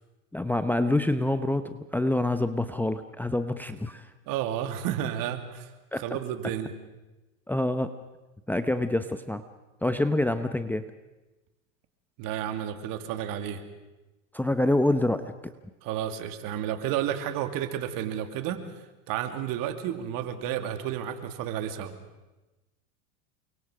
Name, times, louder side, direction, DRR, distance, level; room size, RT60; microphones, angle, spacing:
voice 1, 0.3-4.1 5.9-6.0 7.5-7.9 8.5-9.4 9.8-10.9 14.3-15.3, left 1 dB, 5° left, 9 dB, 0.9 m, -26 dB
voice 2, 4.3-5.7 6.0-6.7 12.2-13.6 15.8-21.9, right 10 dB, 55° right, 7 dB, 2.8 m, -31 dB
29.5 x 24.0 x 5.1 m, 1.1 s
supercardioid pair, 110°, 41 cm